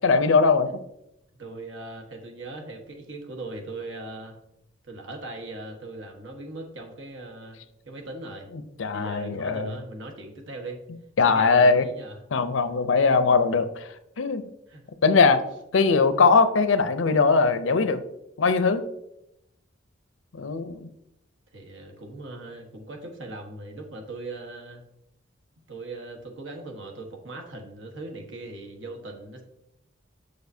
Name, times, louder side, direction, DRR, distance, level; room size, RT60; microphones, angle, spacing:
voice 1, 0.0-0.7 8.8-9.7 11.2-11.8 12.3-14.5 15.0-15.4 15.7-18.0 18.4-18.8 20.3-20.9, left 4 dB, 75° left, 11 dB, 0.6 m, -20 dB
voice 2, 1.4-4.4 4.8-8.5 8.9-10.8 11.2-12.2 14.7-14.8 21.5-24.8 25.7-29.4, right 2 dB, 65° right, 2 dB, 1.3 m, -39 dB
6.8 x 6.4 x 2.7 m, 0.83 s
head